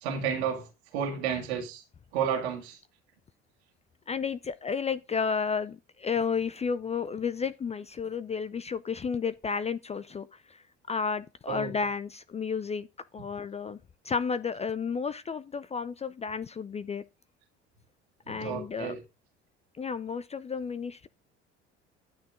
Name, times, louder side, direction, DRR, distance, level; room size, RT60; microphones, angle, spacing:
voice 1, 0.0-0.7 0.9-1.8 2.1-2.8 11.5-11.7 18.3-19.0, right 7 dB, 65° right, 1.9 m, -31 dB
voice 2, 4.1-12.9 13.1-17.0 18.3-18.9 19.8-21.1, left 5 dB, 20° left, 0.5 m, -32 dB
12.0 x 6.3 x 3.7 m
figure-of-eight pair, 60°, 35 cm